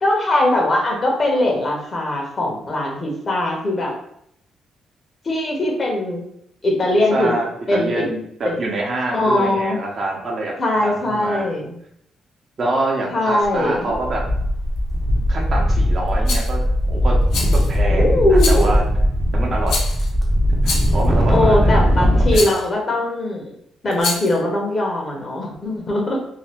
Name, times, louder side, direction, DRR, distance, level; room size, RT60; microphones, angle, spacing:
voice 1, 0.0-3.9 5.2-6.2 6.6-7.3 7.7-8.1 8.4-8.6 9.1-9.8 10.6-11.7 13.1-13.9 17.9-18.7 21.3-23.5 23.8-26.2, left 1 dB, 40° left, 0 dB, 1.0 m, -20 dB
voice 2, 7.1-10.5 10.8-11.4 12.6-14.2 15.3-16.6 16.9-17.2 17.5-18.8 19.3-19.8 20.6-22.6, right 2 dB, 50° right, -1 dB, 0.8 m, -26 dB
sound 1, 13.4-13.6 13.9-22.4, equal, 15° right, 0.7 m, -18 dB
Rattle, 16.3-16.5 17.3-17.8 18.4-18.8 19.7-20.1 20.6-21.1 22.3-22.7 23.9-24.4, left 3 dB, 80° left, 0.6 m, -26 dB
2.8 x 2.2 x 3.4 m, 0.71 s
cardioid pair, 80°, 0 cm